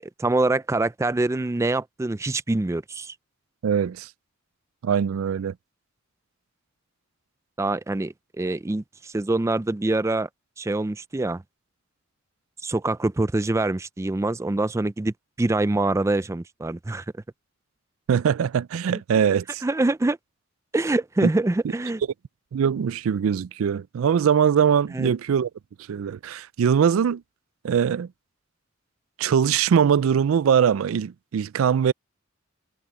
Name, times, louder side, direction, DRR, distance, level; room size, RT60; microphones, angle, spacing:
voice 1, 0.0-3.1 7.6-10.3 10.6-11.4 12.6-17.0 18.9-19.0 19.6-20.2 20.7-22.0 24.9-25.1, right 2 dB, 15° right, 0.3 m, -25 dB
voice 2, 3.6-4.1 4.8-5.5 18.1-19.6 21.2-21.3 22.5-25.5 25.9-27.2 27.6-28.1 29.2-31.9, right 7 dB, 90° right, 0.4 m, -22 dB
head